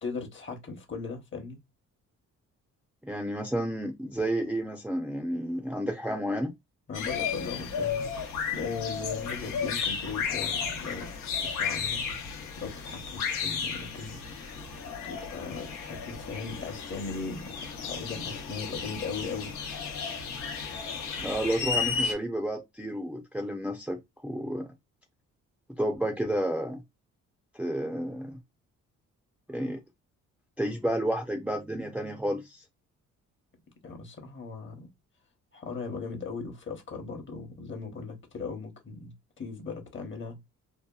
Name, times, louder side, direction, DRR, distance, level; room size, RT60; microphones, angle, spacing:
voice 1, 0.0-1.6 6.9-12.0 12.6-14.5 15.0-19.5 33.8-34.9 35.5-40.5, left 4 dB, 40° left, 1.0 m, -38 dB
voice 2, 3.0-6.5 21.2-24.7 25.8-26.8 27.5-28.4 29.5-29.8 30.6-32.6, right 1 dB, 5° right, 0.5 m, -31 dB
sound 1, 6.9-22.1, left 6 dB, 90° left, 0.8 m, -33 dB
2.7 x 2.2 x 2.3 m
cardioid pair, 90°, 30 cm